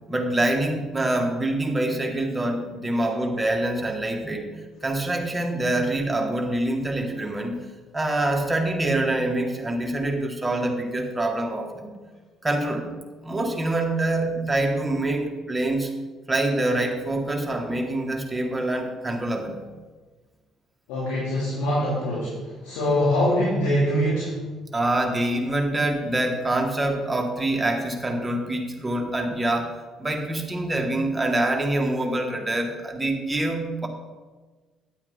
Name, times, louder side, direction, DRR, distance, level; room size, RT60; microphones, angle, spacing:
voice 1, 0.1-4.5 4.8-7.6 7.9-11.9 12.4-12.9 13.2-15.9 16.3-19.6 24.7-33.9, right 1 dB, 15° right, 1 dB, 2.1 m, -25 dB
voice 2, 20.9-24.3, equal, 75° left, -8 dB, 3.2 m, -23 dB
10.0 x 8.7 x 4.0 m, 1.3 s
hypercardioid pair, 55°, 0 cm